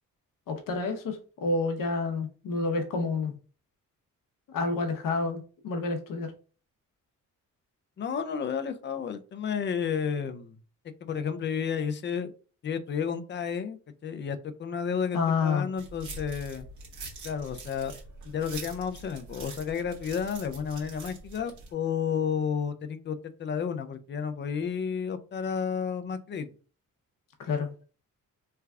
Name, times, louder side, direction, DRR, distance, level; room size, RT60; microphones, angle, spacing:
voice 1, 0.5-3.3 4.5-6.3 15.1-15.7 27.4-27.7, left 4 dB, 75° left, 0.8 m, -29 dB
voice 2, 8.0-10.6 11.0-12.3 12.6-13.8 14.0-16.7 17.2-17.9 18.3-26.5 27.5-27.6, left 7 dB, 35° left, 0.4 m, -31 dB
sound 1, 15.8-21.7, right 2 dB, 65° right, 1.3 m, -44 dB
3.3 x 2.3 x 3.4 m
wide cardioid pair, 135°, 33 cm